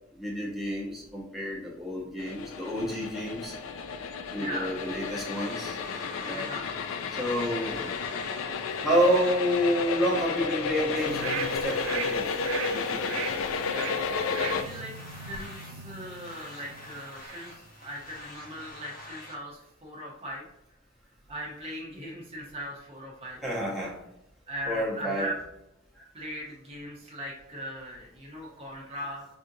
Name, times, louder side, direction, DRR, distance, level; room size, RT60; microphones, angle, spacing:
voice 1, 0.1-3.6 4.3-5.8 6.2-6.5 7.1-7.8 8.8-12.4 12.7-13.3 23.4-24.0 24.7-25.3 26.0-26.1, equal, ahead, -6 dB, 0.9 m, -29 dB
sound 1, 2.2-14.6, left 5 dB, 80° left, 0.3 m, -32 dB
voice 2, 4.4-4.7 6.3-6.8 14.5-20.5 21.3-23.4 24.5-25.4 26.1-29.2, equal, 30° right, -3 dB, 0.7 m, -39 dB
sound 2, 4.8-19.4, left 2 dB, 45° left, 0.8 m, -47 dB
sound 3, 11.1-17.5 17.9-18.0, right 8 dB, 90° right, 0.3 m, -39 dB
4.8 x 2.5 x 2.7 m, 0.87 s
head